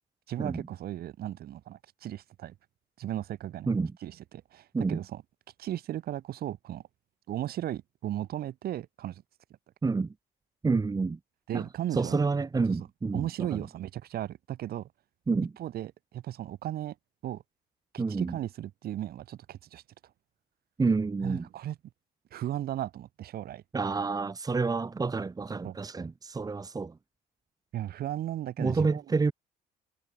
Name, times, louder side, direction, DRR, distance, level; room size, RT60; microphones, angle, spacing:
voice 1, 0.3-2.5 3.0-3.7 4.0-5.2 5.6-6.8 7.3-9.2 11.5-12.2 13.1-14.9 15.6-17.0 17.2-17.4 17.9-19.8 21.2-21.8 22.3-23.6 25.6-25.8 27.7-29.0, right 12 dB, 65° right, 6.0 m, -36 dB
voice 2, 9.8-10.1 10.6-11.2 11.5-11.7 11.9-13.7 15.3-15.5 18.0-18.4 20.8-21.5 23.7-27.0 28.6-29.3, right 4 dB, 20° right, 2.4 m, -29 dB
cardioid pair, 110°, 17 cm